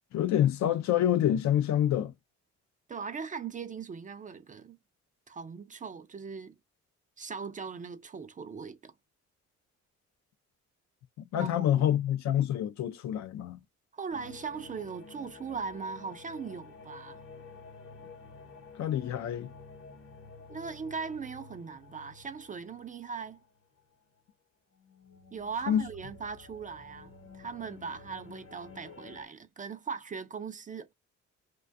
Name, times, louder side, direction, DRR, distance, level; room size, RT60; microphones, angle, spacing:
voice 1, 0.1-2.1 11.2-13.6 18.8-19.5 25.7-25.9, left 11 dB, 65° left, 0.5 m, -27 dB
voice 2, 2.9-4.8 5.3-6.6 7.2-8.9 11.4-12.0 13.9-17.2 20.5-23.4 25.3-30.9, right 5 dB, 25° right, 0.3 m, -39 dB
sound 1, 14.1-24.2 24.7-29.3, left 4 dB, 45° left, 0.9 m, -51 dB
2.4 x 2.2 x 2.5 m
cardioid pair, 90°, 30 cm